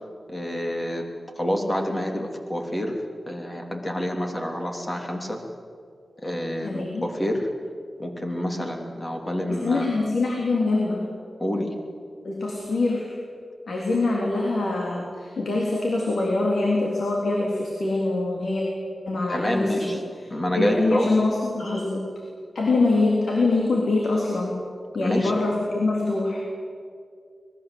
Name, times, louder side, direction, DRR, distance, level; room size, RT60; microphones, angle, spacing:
voice 1, 0.3-1.0 1.3-3.0 3.3-5.4 6.2-7.5 8.0-9.8 11.4-11.7 19.3-20.0 20.3-21.1 25.0-25.4, left 1 dB, 25° left, 2 dB, 3.3 m, -27 dB
voice 2, 6.6-7.0 9.5-11.1 12.2-13.1 13.7-18.6 19.1-20.3 20.6-22.1 22.6-24.6 24.9-26.4, left 2 dB, 75° left, -1 dB, 3.5 m, -24 dB
25.0 x 20.5 x 8.0 m, 2.3 s
wide cardioid pair, 110°, 0 cm